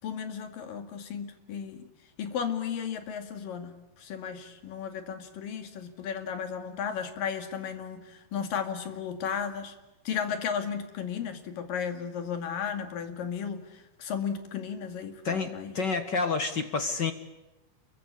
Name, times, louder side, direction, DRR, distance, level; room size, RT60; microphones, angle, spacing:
voice 1, 0.0-1.8 2.2-9.8 10.1-15.8, left 7 dB, 85° left, 7 dB, 4.0 m, -34 dB
voice 2, 15.2-17.1, left 4 dB, 50° left, 9 dB, 1.4 m, -29 dB
28.5 x 23.0 x 8.5 m, 1.0 s
omnidirectional pair, 3.8 m